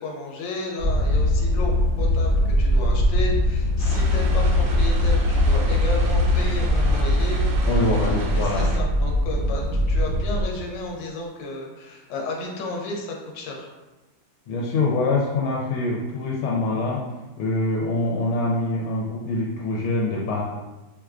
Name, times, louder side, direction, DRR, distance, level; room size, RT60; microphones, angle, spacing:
voice 1, 0.0-7.7 8.0-13.7, left 2 dB, 70° left, -1 dB, 1.3 m, -33 dB
sound 1, 0.8-10.4, left 1 dB, 55° right, 0.9 m, -21 dB
sound 2, 3.8-8.8, right 2 dB, 75° right, 1.2 m, -34 dB
voice 2, 7.7-8.7 14.5-17.0 17.4-20.4, left 2 dB, 90° left, -3 dB, 1.4 m, -24 dB
4.5 x 2.2 x 2.4 m, 1.1 s
omnidirectional pair, 2.2 m